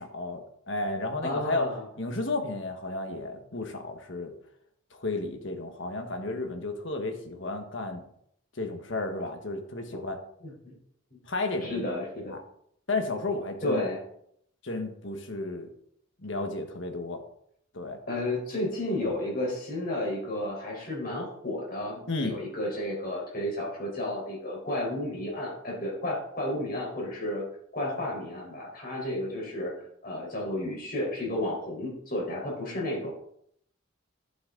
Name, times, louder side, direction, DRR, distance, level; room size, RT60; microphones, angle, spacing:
voice 1, 0.0-1.7 2.0-4.3 4.9-8.0 8.5-10.2 11.3-11.7 12.3-12.4 12.9-13.8 14.6-15.7 16.2-17.2 17.7-18.0 22.1-22.4, left 2 dB, 65° left, 5 dB, 1.5 m, -32 dB
voice 2, 1.2-1.8 10.4-10.7 11.6-12.3 13.6-14.0 18.1-27.4 27.7-29.7 30.0-33.1, left 1 dB, 45° left, -2 dB, 4.4 m, -32 dB
11.0 x 6.6 x 3.9 m, 0.70 s
head